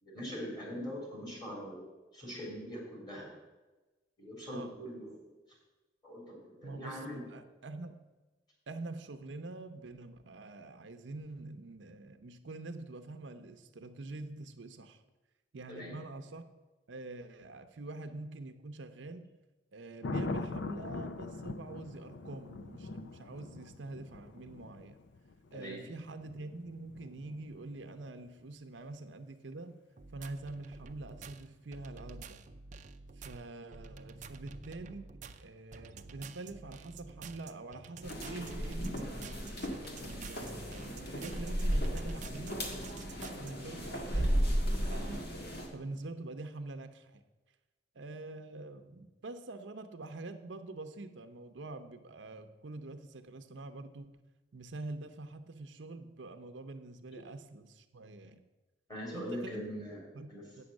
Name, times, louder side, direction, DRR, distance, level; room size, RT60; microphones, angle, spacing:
voice 1, 0.0-3.3 4.2-5.1 6.0-7.2 15.7-16.0 25.5-25.8 58.9-60.0 60.3-60.4, equal, 25° left, -3 dB, 3.7 m, -42 dB
voice 2, 4.5-4.8 6.6-8.0 8.7-15.0 15.5-16.5 16.9-19.3 19.7-25.0 25.5-29.8 30.1-32.5 33.2-39.2 40.0-42.7 43.4-45.4 45.7-47.2 47.9-54.2 54.5-58.4 59.1-59.7 60.1-60.6, right 2 dB, 80° right, 8 dB, 0.7 m, -45 dB
Thunder, 20.0-28.1 30.8-31.1, left 3 dB, 75° left, 0.5 m, -42 dB
sound 1, 30.0-43.5, right 4 dB, 45° right, 0.5 m, -49 dB
sound 2, 38.0-45.7, equal, 60° left, 1.7 m, -34 dB
8.4 x 6.3 x 7.2 m, 1.2 s
head